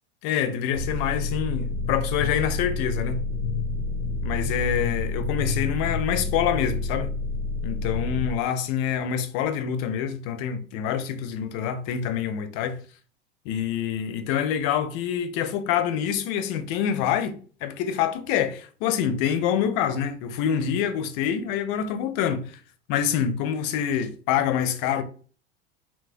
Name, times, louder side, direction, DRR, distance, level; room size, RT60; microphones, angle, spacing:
voice 1, 0.2-3.2 4.2-7.1 7.6-12.8 13.5-22.6 22.9-25.0, left 9 dB, 50° left, 0.5 m, -26 dB
sound 1, 0.7-8.3, left 3 dB, 85° right, 0.8 m, -29 dB
3.0 x 2.2 x 2.5 m
hypercardioid pair, 90°, 30 cm